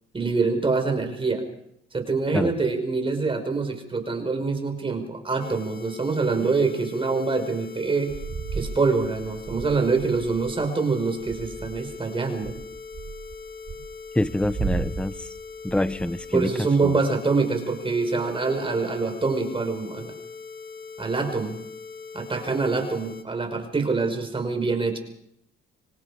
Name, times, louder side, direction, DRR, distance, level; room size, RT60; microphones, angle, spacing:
voice 1, 0.1-1.4 1.9-8.1 8.5-12.6 16.3-20.2 21.0-21.6 22.1-25.0, right 4 dB, 25° right, 5 dB, 5.2 m, -25 dB
sound 1, 5.4-23.2, left 5 dB, 45° left, 2.5 m, -41 dB
sound 2, 8.1-10.6 11.1-12.0 12.4-16.5, right 5 dB, 45° right, 3.8 m, -35 dB
voice 2, 14.1-15.3 15.6-17.0, left 1 dB, 5° left, 14 dB, 0.9 m, -26 dB
25.5 x 25.0 x 5.0 m, 0.73 s
cardioid pair, 90°, 20 cm